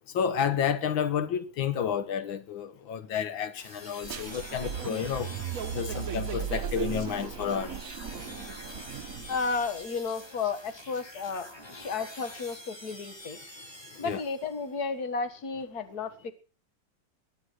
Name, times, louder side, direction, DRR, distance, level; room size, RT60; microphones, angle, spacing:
voice 1, 0.1-5.3 5.7-7.7 14.0-14.2, left 8 dB, 85° left, 1.8 m, -30 dB
sound 1, 3.6-14.7, left 1 dB, 15° left, 2.1 m, -46 dB
sound 2, 4.0-9.6, right 7 dB, 50° right, 1.3 m, -36 dB
voice 2, 9.3-13.4 14.0-16.3, left 4 dB, 55° left, 2.1 m, -33 dB
20.5 x 9.8 x 6.4 m
omnidirectional pair, 2.1 m